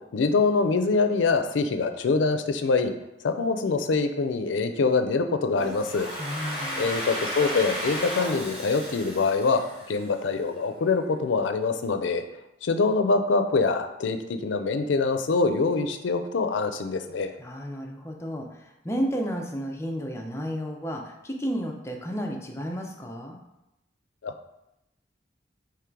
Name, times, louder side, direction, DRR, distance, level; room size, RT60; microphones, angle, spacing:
voice 1, 0.1-2.9 3.2-6.1 6.8-12.2 12.6-14.2 14.4-17.3 24.2-24.5, left 4 dB, 85° left, 8 dB, 0.4 m, -24 dB
Domestic sounds home sounds, 5.6-10.3, equal, 35° right, 1.2 m, -34 dB
voice 2, 6.2-6.9 17.4-18.5 18.8-23.4, equal, 15° left, 1 dB, 0.5 m, -32 dB
3.7 x 3.1 x 4.5 m, 0.89 s
head